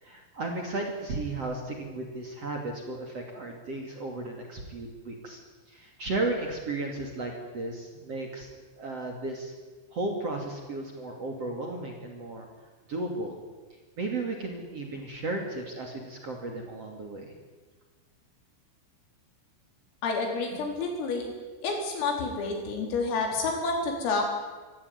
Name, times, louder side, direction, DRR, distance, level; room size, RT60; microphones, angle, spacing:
voice 1, 0.0-5.4 5.7-8.5 8.8-9.5 9.9-12.5 12.9-13.4 14.0-17.3, right 2 dB, 40° right, 2 dB, 2.7 m, -34 dB
voice 2, 20.0-21.3 21.6-24.3, left 3 dB, 85° left, 2 dB, 6.8 m, -29 dB
25.0 x 15.0 x 9.7 m, 1.4 s
omnidirectional pair, 5.8 m